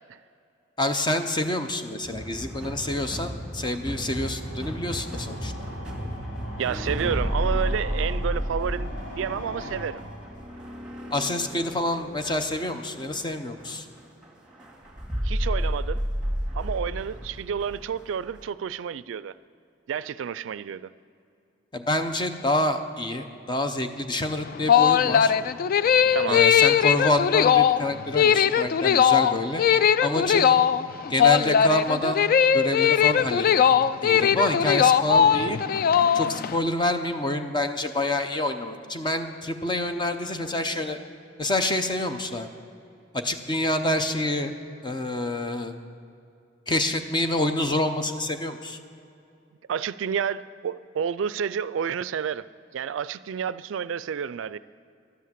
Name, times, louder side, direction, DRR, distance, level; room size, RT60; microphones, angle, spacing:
voice 1, 0.8-5.5 11.1-13.9 21.7-25.3 26.3-29.6 30.0-30.6 31.1-32.3 32.5-33.6 34.0-35.6 36.1-41.0 41.4-42.5 43.1-44.5 44.8-45.7 46.7-48.8, left 1 dB, 25° left, 7 dB, 0.7 m, -27 dB
sound 1, 2.0-18.4, equal, 5° right, 2.0 m, -32 dB
sound 2, 4.0-11.0, equal, 85° left, 2.9 m, -40 dB
voice 2, 6.6-10.0 15.2-16.0 16.5-19.3 19.9-20.9 26.1-26.4 49.7-52.4 52.7-54.6, right 7 dB, 75° right, 16 dB, 0.3 m, -30 dB
sound 3, 24.4-36.6, left 8 dB, 50° left, 0.3 m, -20 dB
12.5 x 8.3 x 7.4 m, 2.5 s
head